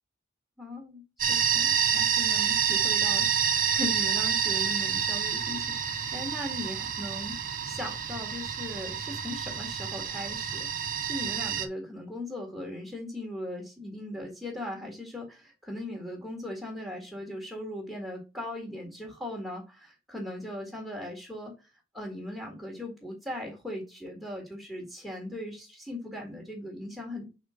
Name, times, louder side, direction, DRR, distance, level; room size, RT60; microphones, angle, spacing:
voice 1, 0.6-1.0 1.3-7.4 7.6-10.7 11.0-21.5 21.9-27.3, left 1 dB, ahead, -1 dB, 2.0 m, -39 dB
sound 1, 1.2-11.6, right 8 dB, 45° right, 0.9 m, -28 dB
5.5 x 4.4 x 5.0 m, 0.29 s
head